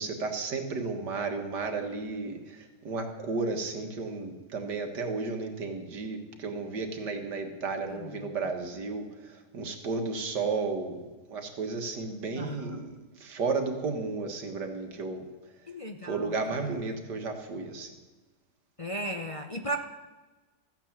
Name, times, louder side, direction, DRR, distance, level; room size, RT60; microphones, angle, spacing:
voice 1, 0.0-15.7 16.0-18.0, right 4 dB, 70° right, 3 dB, 2.2 m, -33 dB
voice 2, 12.4-12.8 15.7-16.3 18.8-19.8, right 1 dB, 45° left, 3 dB, 0.4 m, -35 dB
15.0 x 9.2 x 7.3 m, 1.2 s
omnidirectional pair, 1.9 m